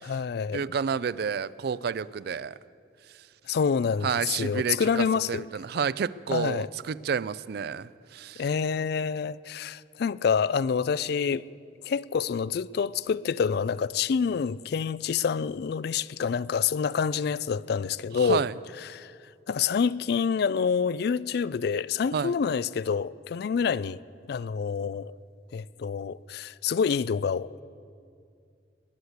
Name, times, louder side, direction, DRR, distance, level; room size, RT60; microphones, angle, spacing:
voice 1, 0.0-0.7 3.5-5.5 6.3-6.7 8.4-11.4 11.8-18.5 18.8-19.1 19.5-24.0 24.3-25.1 25.5-27.6, left 6 dB, 60° left, 0.3 m, -27 dB
voice 2, 0.5-2.6 4.0-8.4 18.2-18.5 22.1-22.3, right 6 dB, 60° right, 0.4 m, -30 dB
20.5 x 8.0 x 8.1 m
head